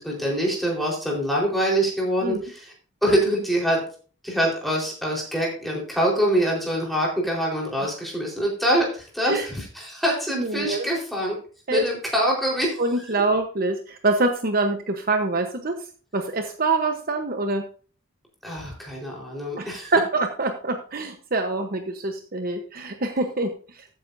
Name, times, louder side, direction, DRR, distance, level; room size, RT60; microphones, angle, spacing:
voice 1, 0.0-2.7 3.0-3.8 4.2-11.4 11.7-12.8 18.4-19.9, equal, ahead, -3 dB, 4.2 m, -24 dB
voice 2, 10.3-10.9 11.7-11.8 12.8-15.8 16.1-17.6 19.6-23.9, right 2 dB, 50° right, 5 dB, 1.0 m, -25 dB
13.5 x 9.4 x 2.7 m, 0.40 s
head